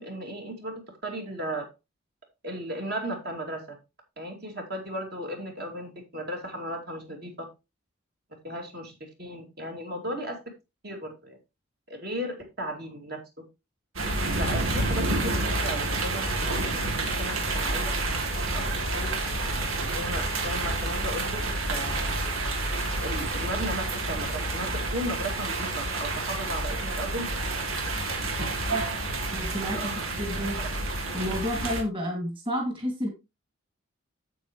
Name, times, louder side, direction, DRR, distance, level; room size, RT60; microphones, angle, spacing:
voice 1, 0.0-1.7 2.4-3.8 4.2-7.5 8.4-10.4 10.8-11.4 11.9-13.2 14.4-17.9 18.5-19.1 20.0-22.1 23.0-27.3 29.6-30.0 30.4-30.7, right 1 dB, 50° right, 2.8 m, -35 dB
sound 1, 14.0-31.8, right 2 dB, 85° right, 2.7 m, -29 dB
voice 2, 29.3-29.9 30.2-30.6 31.1-33.1, equal, 25° right, 2.5 m, -30 dB
9.2 x 7.9 x 3.2 m
head